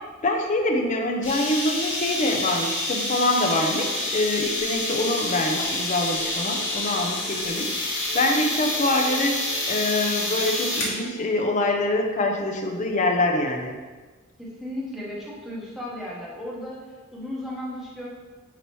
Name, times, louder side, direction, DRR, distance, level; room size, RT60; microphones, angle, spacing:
voice 1, 0.2-13.8, left 2 dB, 35° left, 2 dB, 0.5 m, -25 dB
sound 1, 1.2-11.0, left 2 dB, 60° left, 1.1 m, -28 dB
sound 2, 5.4-11.9, right 1 dB, 75° left, 1.2 m, -43 dB
voice 2, 14.4-18.1, left 1 dB, ahead, -6 dB, 0.8 m, -35 dB
5.3 x 2.9 x 3.1 m, 1.4 s
head